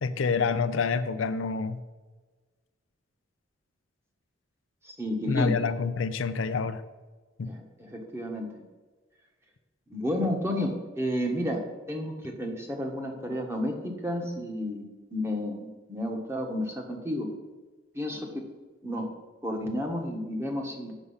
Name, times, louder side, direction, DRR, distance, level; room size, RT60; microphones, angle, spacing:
voice 1, 0.0-1.8 5.3-6.8 7.4-7.5, left 4 dB, 85° left, 11 dB, 0.5 m, -27 dB
voice 2, 4.8-5.6 7.5-8.6 9.9-17.3 17.9-18.5 18.8-19.1 19.4-20.9, left 1 dB, 15° right, 2 dB, 1.3 m, -31 dB
8.3 x 6.6 x 5.6 m, 1.3 s
head